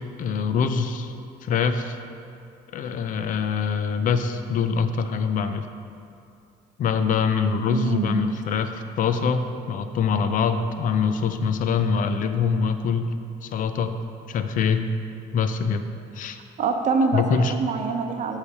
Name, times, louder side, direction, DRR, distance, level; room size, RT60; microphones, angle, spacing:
voice 1, 0.2-1.1 1.4-2.0 2.7-5.7 6.8-13.1 13.4-14.0 14.3-14.9 15.3-15.8 16.1-16.4 17.1-17.5, left 6 dB, 50° left, 9 dB, 0.5 m, -24 dB
voice 2, 7.7-8.2 16.6-18.4, right 4 dB, 45° right, 4 dB, 0.7 m, -25 dB
8.2 x 3.3 x 6.3 m, 2.6 s
cardioid pair, 110°, 17 cm